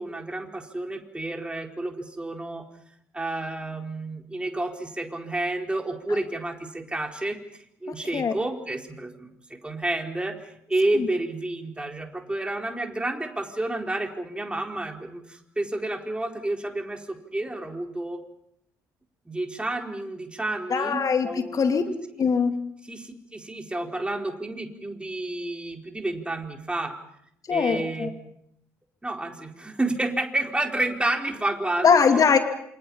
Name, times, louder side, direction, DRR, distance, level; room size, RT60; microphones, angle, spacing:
voice 1, 0.0-2.6 3.1-18.2 19.3-21.6 22.8-26.9 27.5-28.1 29.0-32.0, right 2 dB, 10° right, 3 dB, 4.4 m, -30 dB
voice 2, 7.9-8.3 10.9-11.1 20.7-21.8 22.2-22.5 27.5-28.1 31.8-32.4, left 6 dB, 40° left, 7 dB, 2.7 m, -21 dB
28.0 x 26.5 x 5.7 m, 0.72 s
hypercardioid pair, 50°, 9 cm